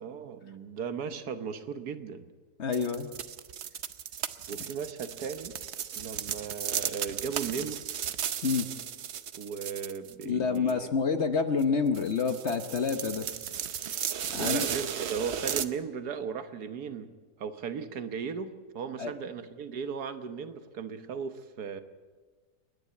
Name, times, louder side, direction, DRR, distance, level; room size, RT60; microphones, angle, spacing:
voice 1, 0.0-2.3 4.5-5.6 5.9-7.8 9.4-11.0 14.3-17.1 17.4-21.8, right 6 dB, 70° right, 10 dB, 1.6 m, -36 dB
voice 2, 2.6-3.1 8.4-8.7 10.2-13.3 14.3-14.7 19.0-19.1, left 5 dB, 50° left, 8 dB, 1.1 m, -28 dB
sound 1, 2.7-10.3 10.6-10.7 11.6-11.7 11.9-15.6, right 9 dB, 55° right, 0.8 m, -35 dB
29.5 x 10.5 x 8.3 m, 1.5 s
omnidirectional pair, 1.7 m